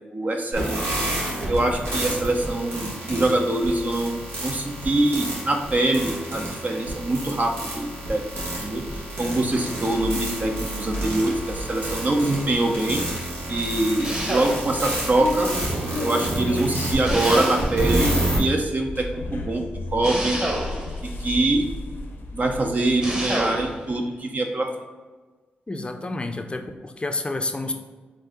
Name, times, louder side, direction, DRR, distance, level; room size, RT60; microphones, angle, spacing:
voice 1, 0.1-1.1 1.5-8.2 8.6-13.0 13.5-15.5 16.0-19.1 19.3-19.6 19.9-20.4 21.0-21.7 22.3-24.7, right 2 dB, 40° right, 2 dB, 0.7 m, -24 dB
sound 1, 0.5-18.4, right 1 dB, 80° right, 1.4 m, -29 dB
sound 2, 8.3-24.0, left 1 dB, 65° left, 0.7 m, -35 dB
sound 3, 14.0-14.9 17.0-18.0 20.0-21.1 23.0-23.8, right 1 dB, 25° right, 1.2 m, -28 dB
voice 2, 25.7-27.7, left 2 dB, 25° left, 6 dB, 0.5 m, -29 dB
4.5 x 2.6 x 3.7 m, 1.4 s
supercardioid pair, 45°, 4 cm